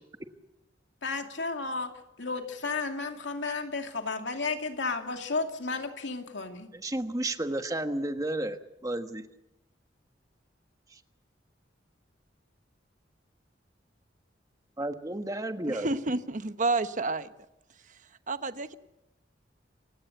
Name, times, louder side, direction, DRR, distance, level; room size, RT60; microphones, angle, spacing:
voice 1, 1.0-1.9 2.2-6.7, left 3 dB, 75° left, 5 dB, 2.6 m, -33 dB
voice 2, 6.7-8.6 8.8-9.2 14.8-15.9, right 1 dB, 20° right, 8 dB, 1.4 m, -32 dB
voice 3, 15.7-17.3 18.3-18.8, right 3 dB, 45° right, 11 dB, 1.0 m, -29 dB
27.5 x 16.5 x 8.0 m, 0.90 s
head